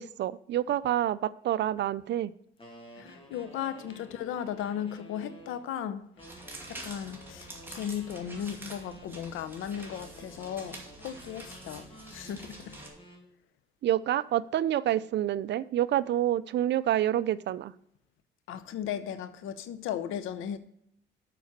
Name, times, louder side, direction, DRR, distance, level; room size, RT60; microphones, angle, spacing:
voice 1, 0.0-2.3 13.8-17.7, right 12 dB, 60° right, 0.5 m, -28 dB
sound 1, 2.6-5.7 6.2-9.1 9.7-13.3, equal, 25° left, 2.7 m, -52 dB
voice 2, 3.0-6.0 6.7-12.8 18.5-20.6, left 9 dB, 85° left, 0.8 m, -36 dB
sound 2, 6.2-12.9, right 2 dB, 10° right, 2.5 m, -46 dB
7.0 x 6.0 x 7.1 m
cardioid pair, 90°, 20 cm